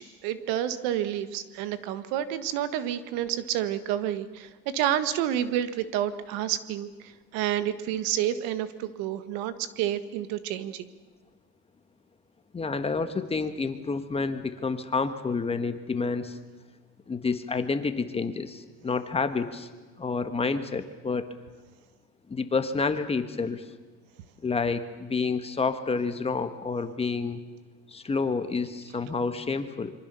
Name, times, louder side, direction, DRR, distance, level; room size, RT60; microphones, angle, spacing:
voice 1, 0.0-10.9, right 11 dB, 70° right, 12 dB, 1.7 m, -29 dB
voice 2, 12.5-16.4 17.1-19.7 20.0-21.3 22.3-23.6 24.4-27.4 27.9-29.9, left 4 dB, 15° left, 9 dB, 1.4 m, -29 dB
26.5 x 24.0 x 6.9 m, 1.3 s
cardioid pair, 140°, 37 cm